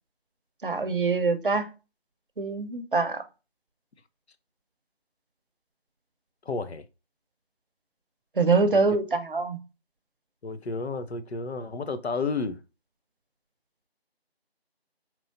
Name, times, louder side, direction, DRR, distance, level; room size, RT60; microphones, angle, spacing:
voice 1, 0.6-1.7 2.4-3.2 8.4-9.6, right 4 dB, 55° right, 0.6 m, -24 dB
voice 2, 6.5-6.8 8.7-8.8 10.4-12.6, left 4 dB, 85° left, 0.6 m, -31 dB
4.6 x 2.9 x 2.6 m
figure-of-eight pair, 170°, 32 cm